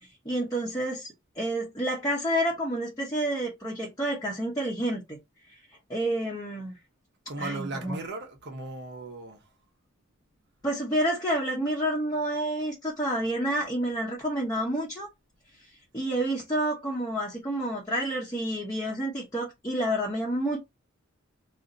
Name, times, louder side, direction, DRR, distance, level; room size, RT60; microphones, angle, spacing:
voice 1, 0.2-5.2 5.9-6.7 7.4-8.0 10.6-15.1 15.9-20.6, right 1 dB, 15° left, 0.8 m, -29 dB
voice 2, 7.3-9.5, right 2 dB, 55° right, 1.0 m, -37 dB
2.8 x 2.5 x 3.8 m
head